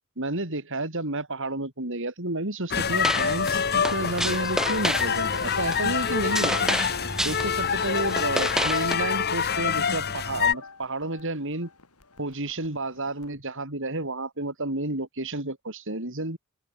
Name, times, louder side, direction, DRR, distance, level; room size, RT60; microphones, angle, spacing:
voice 1, 0.2-6.6 7.2-11.7 12.2-16.4, right 2 dB, 60° right, 4.4 m, -31 dB
sound 1, 2.7-10.5, left 7 dB, 45° left, 1.5 m, -26 dB
sound 2, 3.0-8.9, right 1 dB, ahead, 0.7 m, -30 dB
sound 3, 3.5-13.3, left 2 dB, 85° left, 7.0 m, -42 dB
open air
head